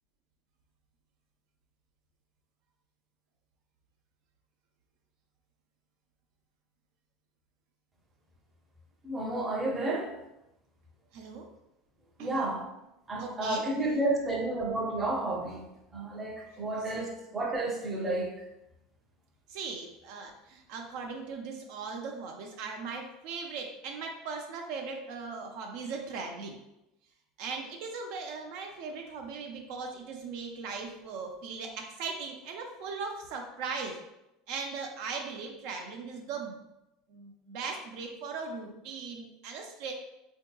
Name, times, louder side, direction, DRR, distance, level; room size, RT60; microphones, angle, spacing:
voice 1, 9.0-10.1 12.2-12.7 13.1-15.6 15.9-18.4, right 2 dB, 15° right, -1 dB, 0.6 m, -31 dB
voice 2, 11.1-11.5 12.2-12.5 13.2-13.6 16.9-17.0 19.5-26.6 27.4-34.0 34.5-36.6 37.1-39.9, right 4 dB, 60° right, 2 dB, 0.4 m, -39 dB
4.4 x 2.7 x 2.2 m, 0.90 s
supercardioid pair, 150°, 0 cm